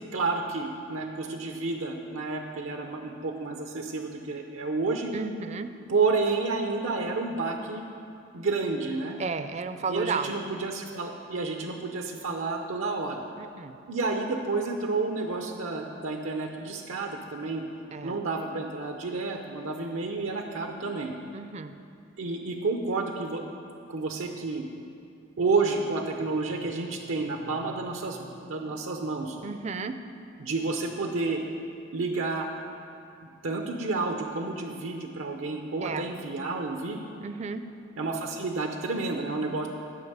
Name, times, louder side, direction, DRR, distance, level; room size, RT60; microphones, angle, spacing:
voice 1, 0.1-5.1 5.9-7.8 8.3-9.2 9.9-13.2 13.9-17.6 18.0-21.1 22.2-23.4 23.9-24.6 25.4-29.4 30.4-31.4 31.9-32.5 33.2-37.0 38.0-39.7, right 3 dB, 85° right, 3 dB, 0.7 m, -30 dB
voice 2, 5.1-5.7 9.2-10.3 13.4-13.8 17.9-18.2 21.3-21.7 29.4-29.9 35.8-36.1 37.2-37.6, right 4 dB, 35° right, 10 dB, 0.4 m, -33 dB
11.0 x 5.4 x 8.0 m, 2.5 s
head